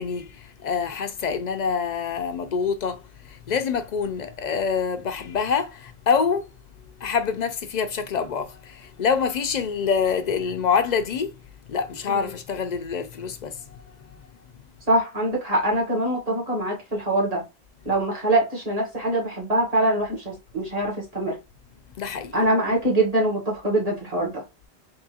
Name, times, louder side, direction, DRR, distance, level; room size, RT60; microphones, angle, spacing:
voice 1, 0.0-6.5 7.0-11.4 11.7-13.8 22.0-22.4, left 6 dB, 55° left, 0.5 m, -26 dB
voice 2, 14.9-17.4 17.8-21.4 22.3-24.4, right 1 dB, 35° right, 1.4 m, -23 dB
3.7 x 3.0 x 2.8 m
omnidirectional pair, 1.1 m